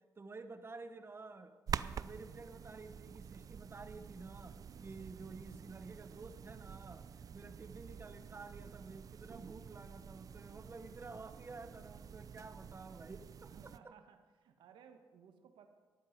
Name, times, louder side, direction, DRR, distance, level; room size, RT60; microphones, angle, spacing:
voice 1, 0.2-1.5 1.8-13.9, right 3 dB, 30° right, 10 dB, 1.1 m, -51 dB
sound 1, 1.7-13.8, right 7 dB, 50° right, 0.4 m, -48 dB
voice 2, 13.5-15.7, right 7 dB, 85° right, 7 dB, 1.4 m, -60 dB
14.0 x 11.0 x 5.3 m, 1.4 s
cardioid pair, 80°, 8 cm